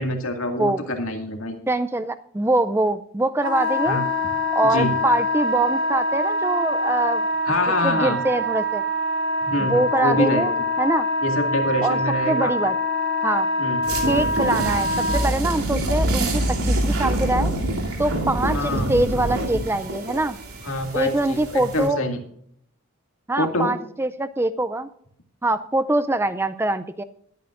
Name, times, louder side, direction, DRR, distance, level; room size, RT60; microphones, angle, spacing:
voice 1, 0.0-1.6 3.8-4.0 4.6-4.9 7.5-8.2 9.4-10.5 11.2-12.5 13.6-13.8 18.5-18.9 20.6-22.2 23.4-23.7, left 1 dB, 70° left, 4 dB, 2.1 m, -25 dB
voice 2, 1.7-4.0 4.5-7.3 7.8-8.8 9.6-10.5 10.8-11.1 11.8-12.0 12.3-12.7 13.2-13.5 14.1-17.5 18.0-20.4 20.9-22.0 23.3-24.9 25.4-27.0, right 2 dB, 10° right, 12 dB, 0.4 m, -23 dB
Wind instrument woodwind instrument, 3.4-15.2, left 1 dB, 60° right, 4.4 m, -24 dB
sound 1, 13.8-21.9, right 1 dB, 85° right, 2.8 m, -26 dB
sound 2, 14.6-21.5, equal, 40° right, 5.3 m, -33 dB
21.0 x 9.3 x 2.5 m, 0.66 s
head